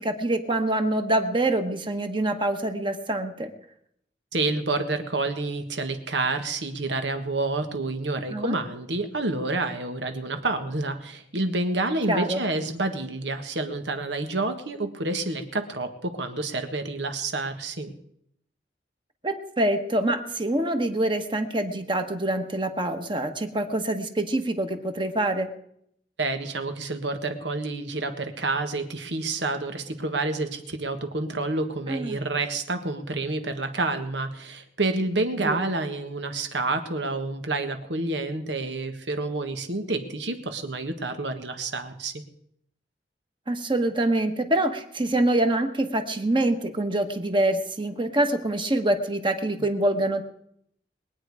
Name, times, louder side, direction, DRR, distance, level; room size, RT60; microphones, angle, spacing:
voice 1, 0.0-3.5 8.3-8.5 12.1-12.4 19.2-25.5 31.9-32.2 35.4-35.6 43.5-50.2, right 1 dB, 30° right, 6 dB, 1.3 m, -25 dB
voice 2, 4.3-17.9 26.2-42.1, right 2 dB, 85° right, 7 dB, 1.6 m, -29 dB
22.0 x 8.9 x 4.9 m, 0.72 s
head